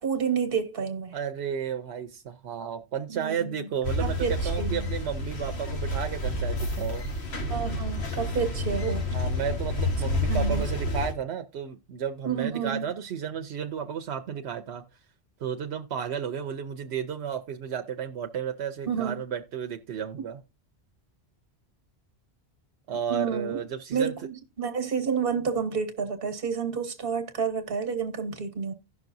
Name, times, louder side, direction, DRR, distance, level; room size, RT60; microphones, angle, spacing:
voice 1, 0.0-1.2 3.1-3.7 4.0-4.9 7.5-9.0 10.3-10.7 12.2-12.8 18.9-19.2 23.1-23.6 23.9-28.7, right 6 dB, 60° right, 1.4 m, -30 dB
voice 2, 1.1-7.1 9.1-14.8 15.4-20.4 22.9-24.1, right 8 dB, 85° right, 1.0 m, -33 dB
sound 1, 3.8-11.1, left 1 dB, 85° left, 1.7 m, -29 dB
16.0 x 6.0 x 2.6 m
omnidirectional pair, 1.1 m